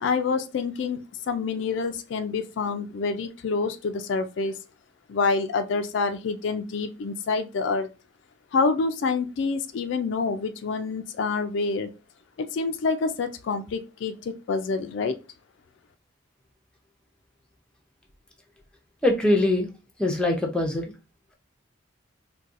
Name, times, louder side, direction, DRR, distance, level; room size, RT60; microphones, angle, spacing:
voice 1, 0.0-4.5 5.1-7.9 8.5-11.9 12.4-15.2, left 4 dB, 60° left, 0.3 m, -27 dB
voice 2, 19.0-19.7 20.0-20.9, left 1 dB, 5° left, 0.5 m, -22 dB
4.0 x 2.2 x 2.5 m
head